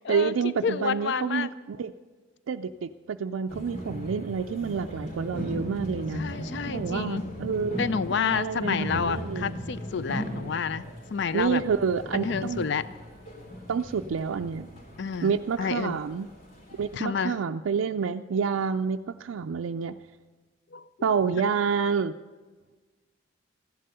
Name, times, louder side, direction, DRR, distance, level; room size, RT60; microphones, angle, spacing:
voice 1, 0.1-1.9 2.5-6.2 6.7-9.6 11.3-12.7 13.7-14.7 15.2-16.3 16.7-19.9 21.0-22.1, right 6 dB, 80° right, 5 dB, 0.4 m, -28 dB
voice 2, 0.6-1.5 6.1-7.2 7.8-11.6 12.1-12.8 15.0-16.0 16.9-17.4 20.7-20.8, left 6 dB, 60° left, 15 dB, 0.4 m, -29 dB
sound 1, 3.5-17.0, equal, 40° left, 3.1 m, -37 dB
15.0 x 11.0 x 6.7 m, 1.4 s
head